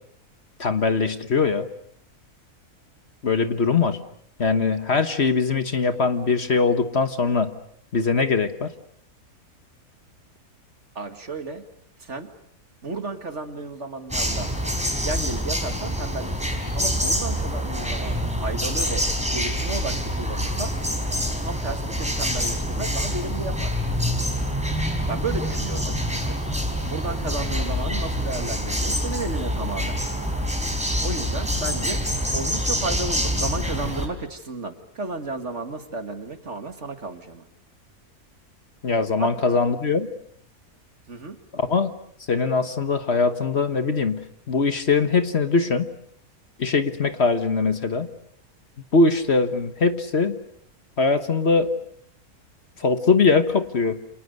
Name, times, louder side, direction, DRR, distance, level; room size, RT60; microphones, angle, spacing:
voice 1, 0.6-1.7 3.2-4.0 4.4-7.5 7.9-8.7 38.8-40.1 41.5-41.9 42.3-45.9 46.6-48.1 48.9-50.4 51.0-51.7 52.8-54.0, left 4 dB, 45° left, 9 dB, 1.5 m, -21 dB
voice 2, 11.0-11.6 12.0-12.3 12.8-14.5 15.0-20.7 21.4-23.7 25.1-26.4 26.9-30.0 31.0-32.0 32.3-37.4 39.2-39.6 41.1-41.4, right 3 dB, 50° right, 7 dB, 2.2 m, -33 dB
sound 1, 14.1-34.1, equal, 5° right, 4.4 m, -26 dB
29.5 x 27.5 x 6.6 m, 0.64 s
omnidirectional pair, 1.6 m